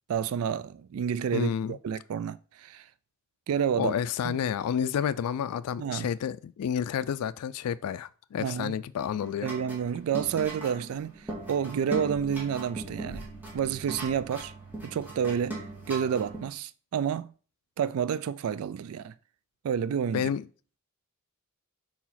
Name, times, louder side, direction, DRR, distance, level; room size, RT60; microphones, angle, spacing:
voice 1, 0.1-2.9 3.5-3.9 4.2-4.4 5.8-6.1 8.4-8.7 9.4-13.3 13.5-14.5 14.8-15.6 15.9-17.3 17.8-19.1 19.6-20.3, right 8 dB, 70° right, 0.3 m, -30 dB
voice 2, 1.3-1.8 3.8-9.5 20.1-20.4, left 8 dB, 85° left, 0.3 m, -30 dB
sound 1, 9.0-16.4, right 2 dB, 10° right, 1.9 m, -39 dB
4.7 x 4.2 x 5.7 m
head